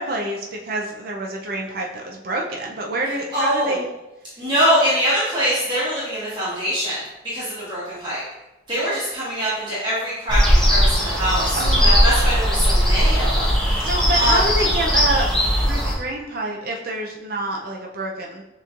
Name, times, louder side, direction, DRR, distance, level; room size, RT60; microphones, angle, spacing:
voice 1, 0.0-3.9 11.5-12.1 13.8-18.4, right 2 dB, 50° right, -1 dB, 0.5 m, -27 dB
voice 2, 3.3-3.7 4.4-8.2 8.7-13.9 14.1-14.4, equal, 25° right, -10 dB, 1.4 m, -23 dB
sound 1, 10.3-15.9, equal, 5° left, 0.8 m, -18 dB
6.7 x 3.1 x 2.5 m, 0.97 s
head